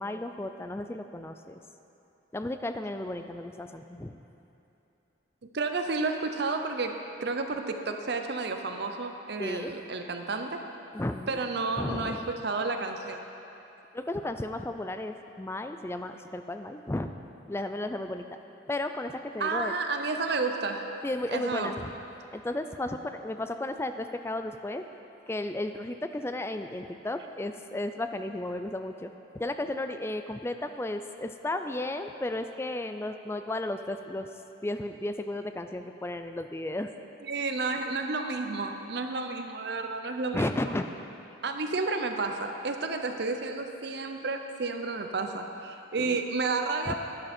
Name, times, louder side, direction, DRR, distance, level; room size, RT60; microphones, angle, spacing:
voice 1, 0.0-1.6 2.3-4.2 9.4-9.7 10.9-11.4 11.8-12.3 13.9-17.1 17.5-18.2 18.7-19.7 21.0-21.9 22.3-24.8 25.3-29.1 29.3-34.3 34.6-36.9 40.3-40.8 46.0-46.2 46.9-47.0, left 1 dB, 15° left, 7 dB, 0.4 m, -34 dB
voice 2, 5.5-10.6 11.3-13.2 19.4-20.9 21.3-21.7 37.2-40.5 41.4-46.9, right 3 dB, 55° right, 5 dB, 0.7 m, -31 dB
11.0 x 10.5 x 4.4 m, 2.9 s
head